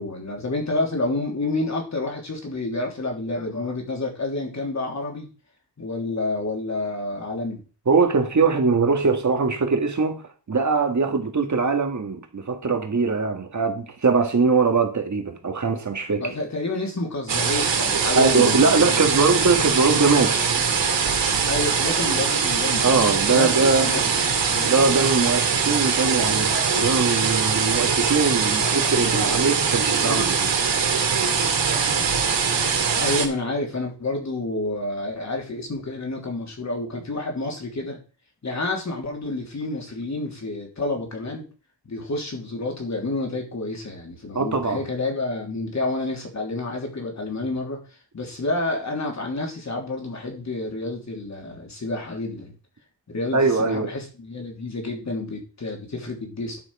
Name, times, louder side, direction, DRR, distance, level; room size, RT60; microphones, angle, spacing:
voice 1, 0.0-5.3 5.8-7.6 16.2-19.1 21.4-23.0 23.3-23.5 23.8-24.2 24.5-24.7 28.6-29.3 29.9-30.3 33.0-38.0 38.4-41.5 41.8-47.8 48.1-52.5 53.1-56.6, left 2 dB, 40° left, 3.1 m, -29 dB
voice 2, 7.9-16.3 18.1-20.6 22.8-24.1 24.6-30.5 44.3-44.8 53.3-53.9, right 4 dB, 40° right, 1.7 m, -21 dB
sound 1, 17.3-33.3, right 6 dB, 80° right, 2.7 m, -22 dB
11.5 x 6.4 x 4.8 m
wide cardioid pair, 145°, 43 cm